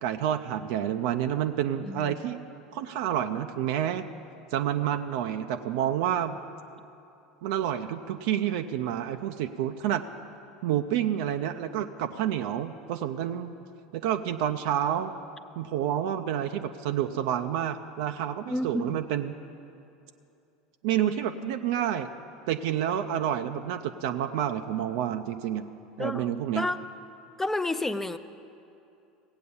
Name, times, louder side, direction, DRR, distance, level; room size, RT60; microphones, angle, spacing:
voice 1, 0.0-2.4 2.7-4.1 4.5-6.4 7.4-10.0 10.6-13.5 13.9-15.1 15.6-19.3 20.8-22.1 22.5-25.7 26.0-26.7, right 10 dB, 60° right, 7 dB, 0.5 m, -29 dB
voice 2, 1.8-2.2 18.5-19.0 26.0-26.8 27.4-28.2, left 2 dB, 10° left, 11 dB, 0.5 m, -30 dB
16.0 x 8.4 x 6.9 m, 2.7 s
figure-of-eight pair, 75°, 3 cm